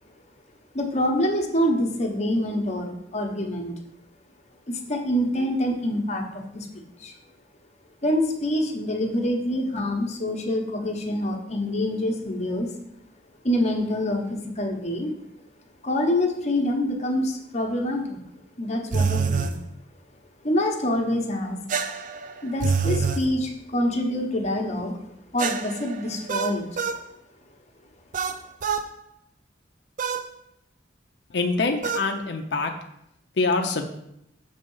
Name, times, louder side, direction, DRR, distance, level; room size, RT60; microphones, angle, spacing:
voice 1, 0.7-3.7 4.7-7.2 8.0-12.8 13.4-15.1 15.8-18.2 18.6-19.6 20.4-21.6 22.4-26.6, left 1 dB, 40° left, 2 dB, 0.9 m, -26 dB
sound 1, 18.9-19.6 21.7-23.3 25.4-27.0 28.1-28.9 30.0-30.3 31.8-32.1, right 5 dB, 45° right, 0.4 m, -26 dB
voice 2, 31.3-32.7 33.4-33.9, left 3 dB, 65° left, 5 dB, 0.5 m, -24 dB
6.5 x 3.5 x 5.5 m, 0.79 s
head